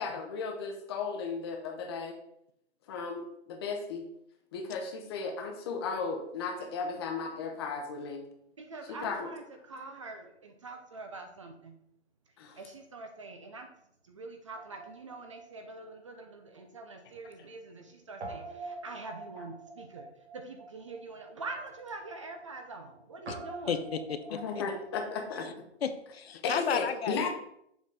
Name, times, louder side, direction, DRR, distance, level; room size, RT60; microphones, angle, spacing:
voice 1, 0.0-2.1 2.9-3.2 3.5-4.0 4.5-8.2 9.0-9.3 12.4-12.6 19.4-19.5 24.3-25.5 26.4-27.3, left 4 dB, 20° left, 3 dB, 0.8 m, -35 dB
voice 2, 8.6-11.8 12.6-13.7 14.0-20.1 20.3-23.8, right 3 dB, 30° right, 5 dB, 0.5 m, -44 dB
Guitar, 14.5-17.0 17.2-17.3 18.2-26.1, right 3 dB, 65° right, 1.9 m, -47 dB
voice 3, 23.7-24.6 25.8-27.3, left 7 dB, 60° left, 9 dB, 0.8 m, -33 dB
6.9 x 4.1 x 4.8 m, 0.75 s
hypercardioid pair, 165°, 35 cm